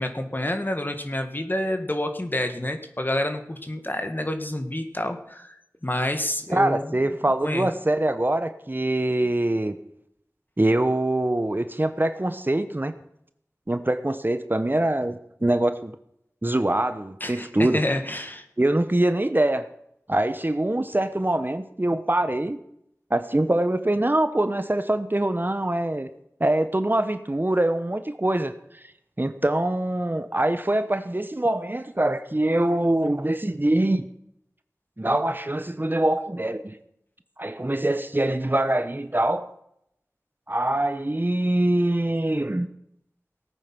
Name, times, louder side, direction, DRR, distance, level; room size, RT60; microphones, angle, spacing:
voice 1, 0.0-5.6 5.8-7.0 7.4-7.7 17.2-18.5, left 1 dB, 35° left, 7 dB, 1.7 m, -28 dB
voice 2, 6.5-9.7 10.6-12.9 13.7-15.9 16.4-17.8 18.6-19.7 20.1-22.6 23.1-26.1 26.4-28.5 29.2-34.0 35.0-36.7 37.4-39.5 40.5-42.7, right 1 dB, 35° right, 10 dB, 1.0 m, -24 dB
18.5 x 8.9 x 6.0 m, 0.76 s
wide cardioid pair, 45°, 6 cm